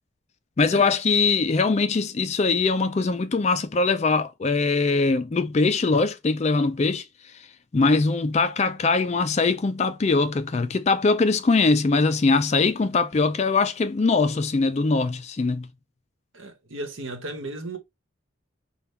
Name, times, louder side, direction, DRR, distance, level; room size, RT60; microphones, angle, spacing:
voice 1, 0.6-7.0 7.7-15.7, left 3 dB, 30° left, 0.3 m, -22 dB
voice 2, 16.3-17.8, right 2 dB, 70° right, 1.1 m, -35 dB
5.5 x 2.3 x 3.4 m
head